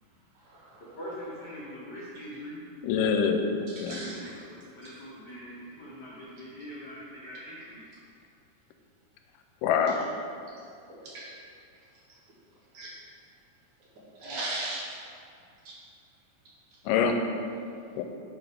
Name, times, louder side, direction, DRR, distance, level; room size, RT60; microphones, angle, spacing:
voice 1, 0.4-0.8 3.7-4.3 4.8-4.9 10.9-11.4 12.7-12.9 14.2-14.8 15.6-15.7, right 2 dB, 65° right, -6 dB, 2.9 m, -38 dB
voice 2, 0.9-2.6 4.0-7.8 13.9-14.4, equal, 70° left, -7 dB, 1.0 m, -43 dB
voice 3, 2.8-4.0 9.6-10.0 16.9-17.2 18.0-18.1, left 6 dB, 85° left, 5 dB, 2.2 m, -25 dB
10.5 x 5.6 x 3.5 m, 2.4 s
omnidirectional pair, 3.8 m